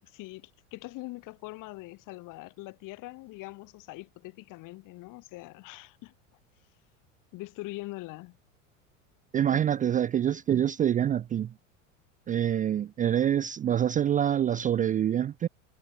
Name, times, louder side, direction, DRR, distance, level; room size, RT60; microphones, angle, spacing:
voice 1, 0.0-6.1 7.3-8.4 9.5-9.8, left 21 dB, 55° left, 3.1 m, -43 dB
voice 2, 9.3-11.5 12.3-15.5, right 10 dB, 20° right, 0.4 m, -26 dB
hypercardioid pair, 90°, 38 cm